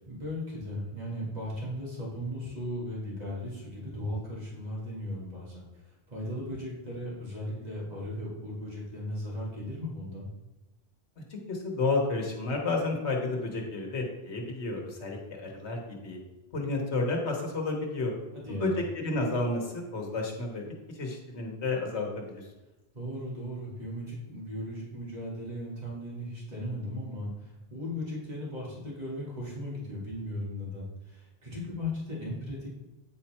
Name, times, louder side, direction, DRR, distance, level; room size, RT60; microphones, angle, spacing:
voice 1, 0.1-10.3 18.3-18.8 22.9-32.7, left 1 dB, 40° right, -5 dB, 2.4 m, -37 dB
voice 2, 11.5-16.2 16.5-18.2 18.5-20.7 20.9-22.4, left 3 dB, 85° left, 1 dB, 1.6 m, -31 dB
8.9 x 4.5 x 4.4 m, 1.1 s
omnidirectional pair, 1.1 m